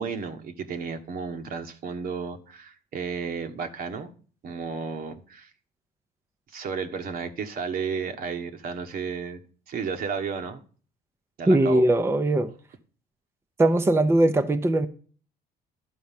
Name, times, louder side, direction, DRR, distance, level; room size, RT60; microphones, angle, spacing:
voice 1, 0.0-4.1 4.4-5.5 6.5-10.6 11.4-11.8, right 5 dB, 60° right, 1.3 m, -33 dB
voice 2, 11.5-12.5 13.6-14.9, right 1 dB, 15° right, 0.7 m, -20 dB
11.5 x 4.6 x 7.3 m
cardioid pair, 110°, 17 cm